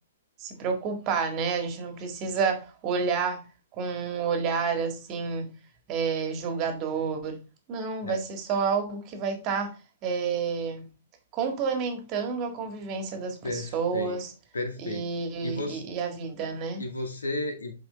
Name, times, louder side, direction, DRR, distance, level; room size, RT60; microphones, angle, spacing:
voice 1, 0.4-3.4 3.8-5.5 5.9-7.4 7.7-9.8 10.0-10.8 11.3-14.3 14.8-16.8, right 5 dB, 30° right, 1.8 m, -29 dB
voice 2, 13.4-14.2 14.5-15.1 15.4-15.8 16.8-17.7, left 2 dB, 75° left, 2.1 m, -33 dB
7.9 x 5.0 x 3.5 m
figure-of-eight pair, 115°, 0 cm